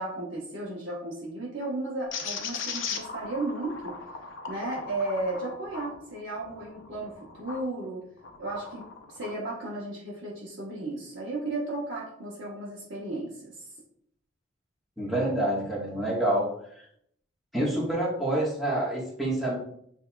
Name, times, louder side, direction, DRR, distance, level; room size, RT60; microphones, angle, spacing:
voice 1, 0.0-4.0 4.5-8.0 8.4-8.8 9.1-13.7, right 2 dB, 60° right, -5 dB, 1.1 m, -34 dB
sound 1, 2.1-7.7 8.2-9.4, left 5 dB, 65° left, 0.6 m, -38 dB
voice 2, 15.0-16.5 17.5-19.6, right 1 dB, ahead, -6 dB, 1.3 m, -27 dB
7.8 x 2.8 x 2.2 m, 0.69 s
head